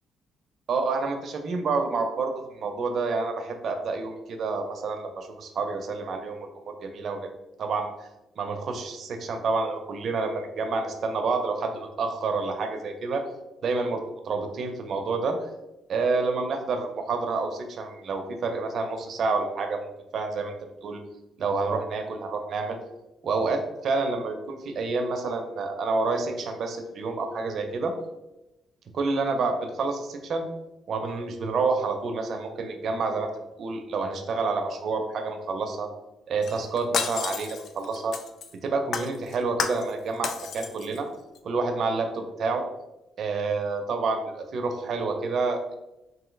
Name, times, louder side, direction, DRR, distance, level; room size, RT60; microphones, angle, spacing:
voice 1, 0.7-7.3 7.6-8.1 8.4-13.2 13.6-15.5 15.9-20.5 20.8-21.0 21.4-22.8 23.2-27.9 28.9-30.5 30.9-33.3 33.6-35.9 36.3-38.1 38.6-41.1 41.4-42.6 43.2-45.8, right 3 dB, 60° right, 5 dB, 0.6 m, -28 dB
Shatter, 36.4-38.5 38.9-39.9 40.2-41.0 41.3-41.4, left 6 dB, 65° left, 0.4 m, -31 dB
3.9 x 2.7 x 3.8 m, 0.96 s
cardioid pair, 90°, 0 cm